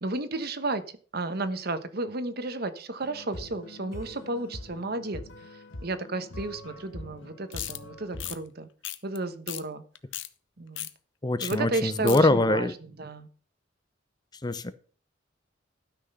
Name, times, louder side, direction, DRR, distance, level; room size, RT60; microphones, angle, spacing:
voice 1, 0.0-0.8 1.1-5.2 5.8-8.7 9.0-9.8 10.6-10.9 11.4-12.7 13.0-13.3, right 2 dB, 55° right, 11 dB, 1.1 m, -32 dB
sound 1, 3.0-8.4, left 1 dB, 90° left, 1.5 m, -43 dB
sound 2, 7.5-7.8 8.2-8.4 8.8-9.2 9.5-9.6 9.9-10.3 10.8-10.9 11.4-11.6 11.8-12.2, left 14 dB, 75° left, 0.9 m, -35 dB
voice 2, 11.2-12.7 14.4-14.7, left 2 dB, 20° left, 13 dB, 0.6 m, -23 dB
12.5 x 6.3 x 5.5 m, 0.41 s
head